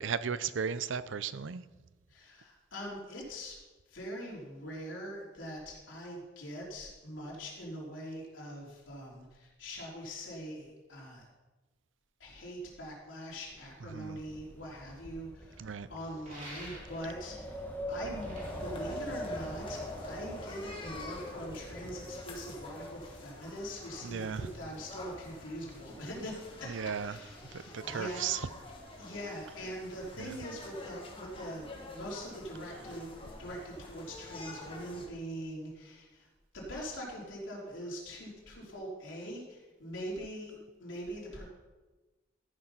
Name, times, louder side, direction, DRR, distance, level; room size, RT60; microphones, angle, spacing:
voice 1, 0.0-1.6 13.9-14.2 15.6-15.9 24.0-24.5 26.7-27.2 27.5-28.4 30.2-30.3, right 6 dB, 80° right, 15 dB, 0.5 m, -35 dB
voice 2, 2.1-3.6 3.9-11.3 12.2-15.6 15.9-18.4 18.6-26.7 27.0-28.3 29.0-33.1 33.4-36.3 36.5-41.4, equal, 90° left, -4 dB, 3.7 m, -43 dB
Wind, 13.5-23.6, equal, 10° left, 1.6 m, -43 dB
sound 1, 16.2-17.2 18.0-19.7, right 1 dB, 45° right, 3.6 m, -49 dB
sound 2, 18.4-35.1, left 2 dB, 30° left, 1.7 m, -48 dB
13.5 x 6.4 x 5.7 m, 1.2 s
head